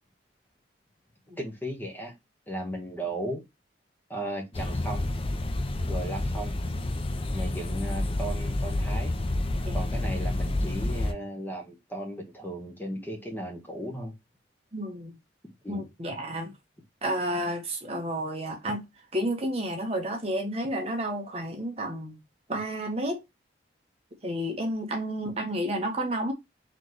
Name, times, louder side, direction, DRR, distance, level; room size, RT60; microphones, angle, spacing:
voice 1, 1.4-2.1 2.5-3.4 4.1-5.1 5.9-6.5 7.3-9.1 9.7-14.1 15.6-15.8, right 1 dB, 10° left, 1.1 m, -36 dB
sound 1, 4.5-11.1, left 1 dB, 30° left, 0.5 m, -29 dB
voice 2, 14.7-15.1 15.7-16.5 17.0-18.8 19.1-22.2 22.5-23.2 24.2-26.3, right 1 dB, 35° right, 1.1 m, -31 dB
4.1 x 3.1 x 3.2 m
head